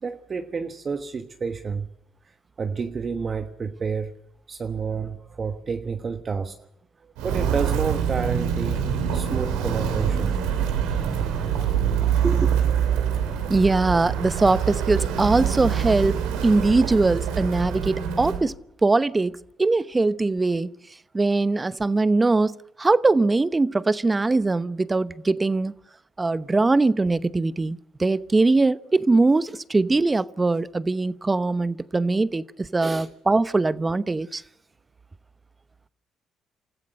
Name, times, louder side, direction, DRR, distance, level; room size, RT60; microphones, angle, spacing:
voice 1, 0.0-1.9 2.2-4.2 4.5-6.6 7.0-8.8 9.1-10.4 32.8-33.1, right 5 dB, 45° right, 1.2 m, -30 dB
Walk footsteps, 7.2-18.4, right 8 dB, 80° right, 2.9 m, -25 dB
voice 2, 12.2-12.6 13.5-16.2 16.4-18.5 18.8-20.7 21.1-25.7 26.2-34.4, right 3 dB, 25° right, 0.8 m, -21 dB
28.0 x 15.0 x 6.5 m
hypercardioid pair, 55°, 0 cm